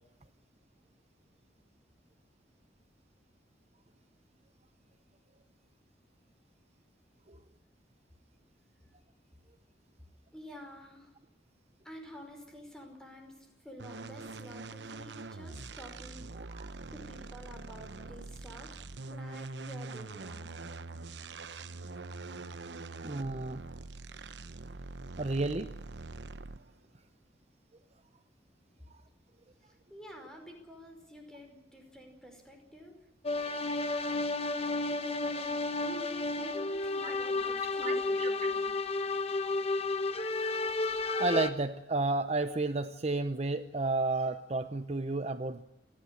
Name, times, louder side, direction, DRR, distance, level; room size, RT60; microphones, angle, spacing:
voice 1, 10.3-11.1 11.8-16.3 16.9-18.7 19.1-20.5 29.6-33.1 34.9-38.7, equal, 5° left, 3 dB, 5.2 m, -49 dB
sound 1, 13.8-26.8, right 3 dB, 85° right, 1.0 m, -44 dB
voice 2, 16.4-16.7 23.0-23.6 25.2-25.8 37.0-37.1 37.8-38.3 41.2-45.6, right 3 dB, 40° right, 10 dB, 0.8 m, -32 dB
sound 2, 33.2-41.5, left 3 dB, 35° left, 1.2 m, -32 dB
29.5 x 11.5 x 10.0 m, 0.88 s
head